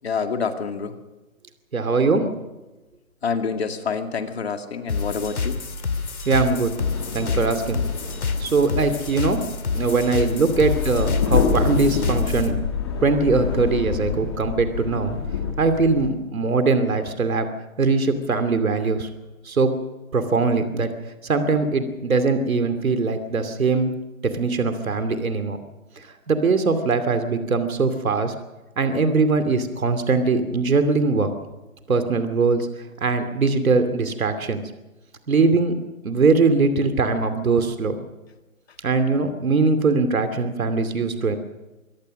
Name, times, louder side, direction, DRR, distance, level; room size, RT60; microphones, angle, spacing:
voice 1, 0.0-0.9 3.2-5.6, left 5 dB, 45° left, 6 dB, 2.2 m, -27 dB
voice 2, 1.7-2.2 6.3-7.8 8.4-9.4 9.7-12.6 13.0-15.2 15.6-17.5 17.8-19.1 19.4-19.7 20.1-20.9 21.2-23.9 24.2-25.6 26.3-28.3 28.8-31.3 31.9-32.7 33.0-34.6 35.3-35.7 36.0-38.0 38.8-41.4, right 4 dB, 75° right, 9 dB, 2.7 m, -21 dB
sound 1, 4.9-12.5, left 4 dB, 85° left, 2.9 m, -28 dB
sound 2, 6.8-16.1, left 6 dB, 20° left, 1.4 m, -27 dB
24.5 x 17.5 x 6.5 m, 1.1 s
hypercardioid pair, 170°, 42 cm